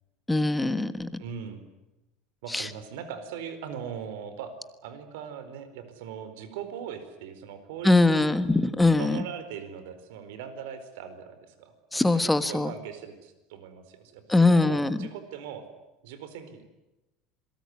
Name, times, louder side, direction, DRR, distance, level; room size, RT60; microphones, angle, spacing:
voice 1, 0.3-1.1 2.5-2.7 7.8-9.2 11.9-12.7 14.3-15.1, left 2 dB, 5° left, 11 dB, 1.5 m, -22 dB
voice 2, 1.2-1.6 2.4-4.6 4.8-8.3 9.0-15.7 16.0-16.8, right 7 dB, 80° right, 11 dB, 4.6 m, -40 dB
27.5 x 22.0 x 9.7 m, 1.0 s
cardioid pair, 160°, 0 cm